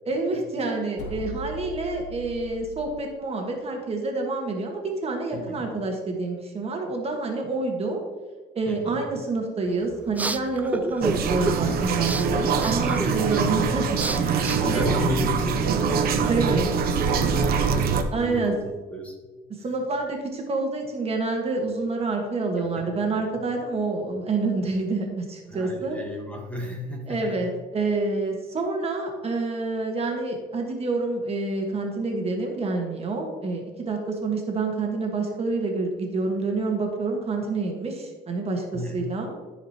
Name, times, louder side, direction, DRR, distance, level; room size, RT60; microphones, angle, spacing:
voice 1, 0.1-8.0 8.5-14.9 16.3-16.7 18.1-18.5 19.6-26.0 27.1-39.3, right 3 dB, 35° right, 2 dB, 1.6 m, -28 dB
sound 1, 1.0-3.0, left 4 dB, 70° left, 2.4 m, -39 dB
voice 2, 5.3-5.6 8.6-9.0 13.0-13.7 14.2-19.2 22.6-22.7 25.5-27.4 38.7-39.1, left 1 dB, 10° left, 1 dB, 1.5 m, -34 dB
sound 2, 9.7-15.6, right 2 dB, 10° right, 0.3 m, -33 dB
sound 3, 11.0-18.0, right 6 dB, 65° right, 0.8 m, -24 dB
13.5 x 5.0 x 3.0 m, 1.4 s
cardioid pair, 110°, 17 cm